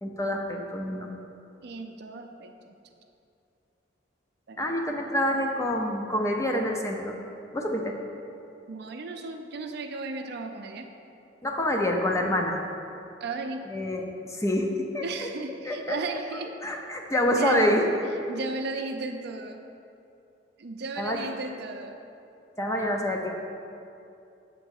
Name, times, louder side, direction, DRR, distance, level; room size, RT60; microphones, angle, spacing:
voice 1, 0.0-1.1 4.6-7.2 7.5-8.0 11.4-12.6 13.7-15.3 15.6-16.0 16.6-17.8 21.0-21.2 22.6-23.3, left 1 dB, 15° left, 1 dB, 0.5 m, -27 dB
voice 2, 1.6-2.5 4.5-4.9 8.7-10.9 13.2-13.7 15.0-16.5 17.2-17.7 18.3-19.6 20.6-22.0, right 3 dB, 60° right, 5 dB, 0.5 m, -35 dB
7.0 x 3.8 x 6.4 m, 2.7 s
head